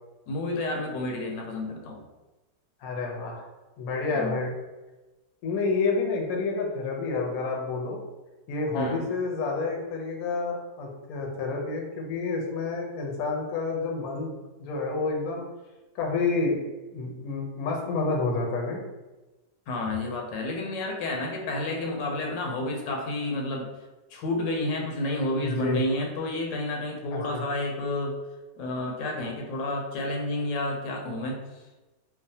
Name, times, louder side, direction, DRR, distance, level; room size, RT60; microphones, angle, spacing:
voice 1, 0.3-2.0 4.1-4.4 8.7-9.0 19.7-23.7 24.1-28.1 28.6-31.4, left 2 dB, 85° left, 1 dB, 1.3 m, -30 dB
voice 2, 2.8-3.4 3.8-4.5 5.4-8.0 8.5-15.4 15.9-16.6 16.9-18.8 25.4-25.8 27.1-27.4, left 3 dB, 70° left, 0 dB, 0.9 m, -29 dB
3.1 x 2.0 x 2.7 m, 1.1 s
omnidirectional pair, 1.9 m